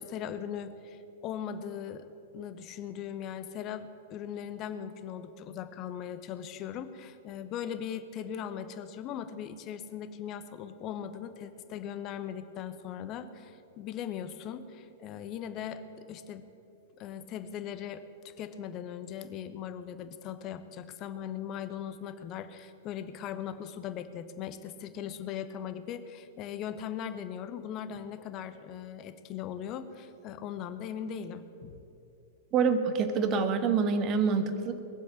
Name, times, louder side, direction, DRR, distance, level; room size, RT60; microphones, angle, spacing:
voice 1, 0.0-2.1 2.3-15.8 16.1-16.4 17.0-31.8, left 9 dB, 35° left, 11 dB, 1.0 m, -39 dB
voice 2, 32.5-34.8, right 5 dB, 35° right, 9 dB, 1.4 m, -26 dB
20.0 x 7.7 x 8.6 m, 2.9 s
figure-of-eight pair, 100°, 0 cm